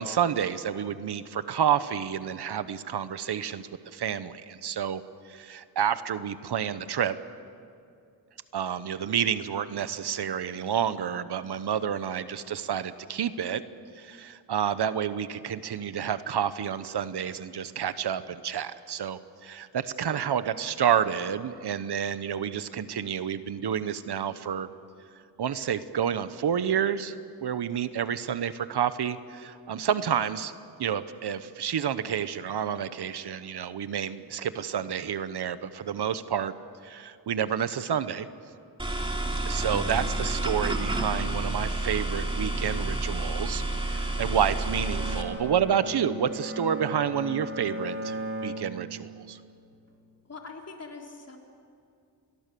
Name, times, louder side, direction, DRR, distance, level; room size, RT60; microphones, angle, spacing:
voice 1, 0.0-7.2 8.5-13.6 14.0-24.7 25.4-27.2 27.4-30.5 30.8-36.5 36.8-38.3 39.5-48.2 48.4-49.4, right 8 dB, 70° right, 13 dB, 1.1 m, -29 dB
sound 1, 38.8-45.2, right 2 dB, 10° right, 2.9 m, -29 dB
Bowed string instrument, 44.3-49.6, right 1 dB, 30° right, 3.3 m, -37 dB
voice 2, 50.3-51.4, left 4 dB, 35° left, 1 dB, 3.8 m, -42 dB
29.5 x 22.0 x 6.9 m, 2.5 s
wide cardioid pair, 110°, 41 cm